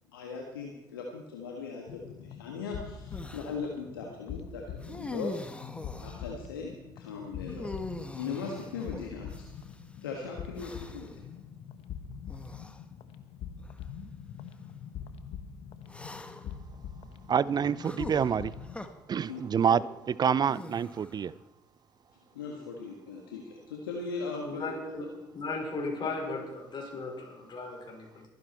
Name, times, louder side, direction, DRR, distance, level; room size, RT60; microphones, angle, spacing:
voice 1, 0.1-5.4 5.7-7.7 8.1-9.5 10.0-11.2 19.2-19.4 19.7-19.8 22.3-24.7, left 4 dB, 85° left, 1.6 m, -39 dB
sound 1, 1.9-18.8, left 7 dB, 60° left, 1.3 m, -44 dB
sound 2, 3.1-3.6 4.8-6.3 7.5-9.8 10.6-11.2 12.3-12.8 13.6-13.8 15.9-16.6 17.8-18.9 20.4-21.3, left 1 dB, 10° left, 1.4 m, -43 dB
voice 2, 17.3-18.5 19.1-21.3, right 7 dB, 35° right, 0.5 m, -27 dB
voice 3, 24.4-25.1 25.3-28.3, left 3 dB, 40° left, 5.1 m, -36 dB
23.0 x 10.5 x 4.4 m
hypercardioid pair, 55°, 11 cm